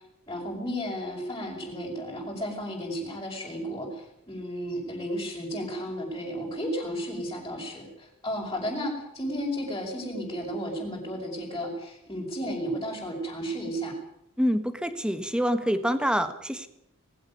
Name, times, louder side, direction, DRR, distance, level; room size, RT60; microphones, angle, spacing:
voice 1, 0.3-14.0, equal, 15° left, -5 dB, 5.7 m, -33 dB
voice 2, 14.4-16.7, equal, 5° right, 10 dB, 1.6 m, -26 dB
20.0 x 16.5 x 9.4 m, 0.76 s
head